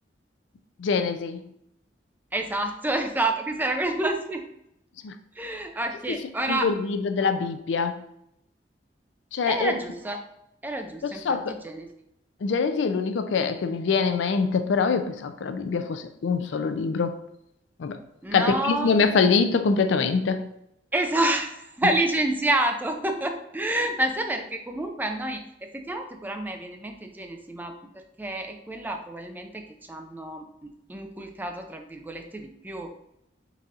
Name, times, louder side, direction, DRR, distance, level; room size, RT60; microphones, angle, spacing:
voice 1, 0.8-1.4 5.0-5.2 6.1-6.2 6.5-8.0 9.3-9.7 11.0-11.6 12.4-17.2 17.8-18.0 18.3-20.4, left 5 dB, 85° left, 9 dB, 0.4 m, -24 dB
voice 2, 2.3-4.4 5.4-6.7 7.2-7.3 9.5-10.2 10.6-11.9 18.2-18.9 20.9-27.8 28.2-29.6 29.9-32.9, right 1 dB, 10° right, 5 dB, 0.4 m, -28 dB
4.1 x 4.0 x 2.4 m, 0.78 s
head